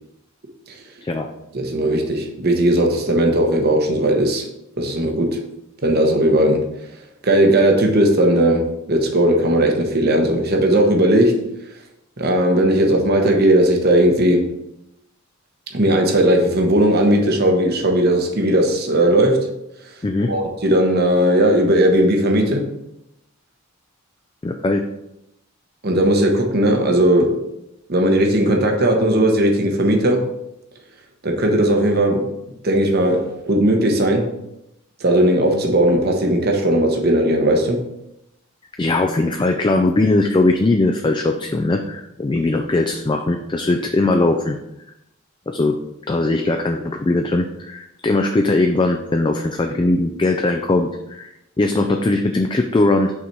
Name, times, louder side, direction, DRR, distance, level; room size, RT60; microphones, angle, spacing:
voice 1, 1.5-4.4 4.8-5.4 5.8-6.7 7.2-11.5 12.2-14.6 15.7-19.5 20.3-22.7 25.8-27.5 27.9-30.3 31.2-32.3 32.6-34.3 35.0-37.8, right 1 dB, 45° right, 3 dB, 1.0 m, -17 dB
voice 2, 24.4-24.8 38.8-44.6 45.5-45.8 46.1-53.1, left 2 dB, 20° left, 4 dB, 0.3 m, -19 dB
6.0 x 4.0 x 4.5 m, 0.86 s
head